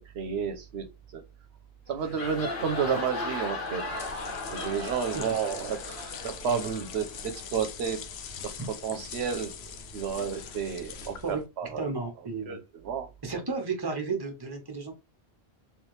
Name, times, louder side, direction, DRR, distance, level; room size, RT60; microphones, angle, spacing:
voice 1, 0.1-1.2 1.9-3.9 4.5-8.1 8.4-9.5 9.9-11.9 12.5-13.1, right 7 dB, 80° right, 0.9 m, -31 dB
sound 1, 1.9-7.4, left 2 dB, 55° left, 1.2 m, -37 dB
sound 2, 3.7-11.5, left 7 dB, 80° left, 0.9 m, -42 dB
voice 2, 11.7-12.6 13.2-14.9, right 4 dB, 25° right, 1.0 m, -33 dB
3.4 x 3.2 x 3.1 m
omnidirectional pair, 1.1 m